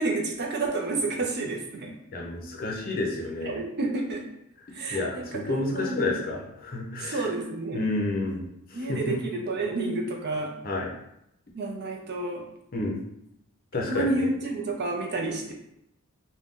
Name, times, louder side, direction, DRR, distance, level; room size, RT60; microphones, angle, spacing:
voice 1, 0.0-1.9 3.4-4.3 4.7-6.2 7.0-7.8 8.7-10.5 11.5-12.4 13.9-15.5, right 2 dB, 50° right, 0 dB, 0.5 m, -30 dB
voice 2, 2.1-3.6 4.9-7.3 7.7-8.4 8.7-9.2 10.6-10.9 12.7-13.0 13.7-14.3, left 2 dB, 40° left, -1 dB, 0.6 m, -30 dB
2.6 x 2.2 x 3.5 m, 0.78 s
head